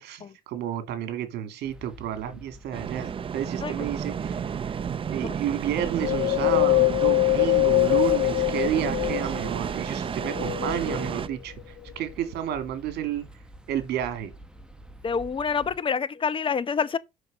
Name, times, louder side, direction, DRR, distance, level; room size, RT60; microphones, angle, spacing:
voice 1, 0.0-4.4 5.1-13.2 13.7-14.3, right 10 dB, 75° right, 2.4 m, -31 dB
sound 1, 1.6-15.8, right 1 dB, 5° right, 1.5 m, -48 dB
sound 2, 2.7-11.3, right 7 dB, 30° right, 0.6 m, -32 dB
Wind, 6.0-9.6 10.1-11.3 11.9-12.0, left 23 dB, 85° left, 0.4 m, -23 dB
voice 2, 15.0-17.0, left 6 dB, 30° left, 0.9 m, -27 dB
7.9 x 6.1 x 6.2 m
cardioid pair, 110°, 17 cm